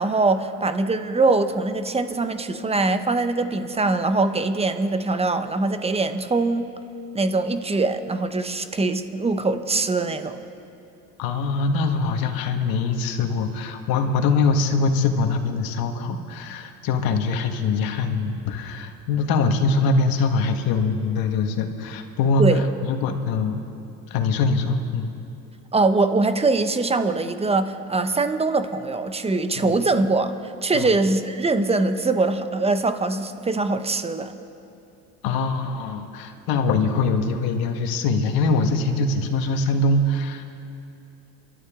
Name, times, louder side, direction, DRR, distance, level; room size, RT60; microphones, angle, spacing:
voice 1, 0.0-6.7 7.1-10.4 22.4-22.6 25.7-34.4, right 3 dB, 15° right, 9 dB, 1.0 m, -22 dB
voice 2, 11.2-23.6 24.1-25.1 29.6-29.7 30.7-30.9 35.2-40.4, left 3 dB, 65° left, 5 dB, 1.8 m, -23 dB
29.0 x 12.5 x 3.8 m, 2.7 s
supercardioid pair, 105°, 38 cm